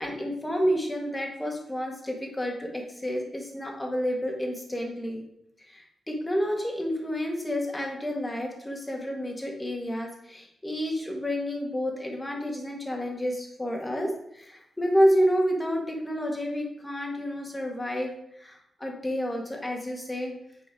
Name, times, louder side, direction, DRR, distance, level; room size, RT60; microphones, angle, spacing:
voice 1, 0.0-5.2 5.6-20.3, equal, 15° left, 1 dB, 1.7 m, -29 dB
9.1 x 4.4 x 4.7 m, 0.74 s
wide cardioid pair, 140°, 0 cm